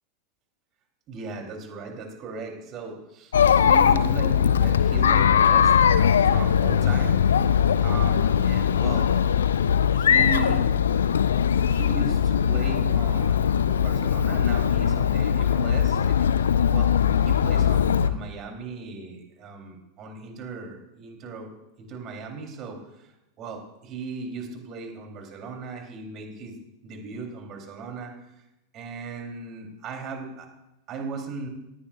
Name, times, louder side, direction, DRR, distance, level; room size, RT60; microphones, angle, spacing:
voice 1, 1.1-5.7 6.3-7.2 7.5-9.1 9.9-10.6 11.7-16.4 16.7-21.5 21.8-22.8 23.4-26.6 26.8-28.1 28.7-30.5 30.9-31.5, right 4 dB, 35° right, 2 dB, 3.9 m, -37 dB
Chatter, 3.3-18.1, left 8 dB, 65° left, 0.8 m, -20 dB
18.5 x 15.0 x 2.6 m, 0.88 s
figure-of-eight pair, 90°, 0 cm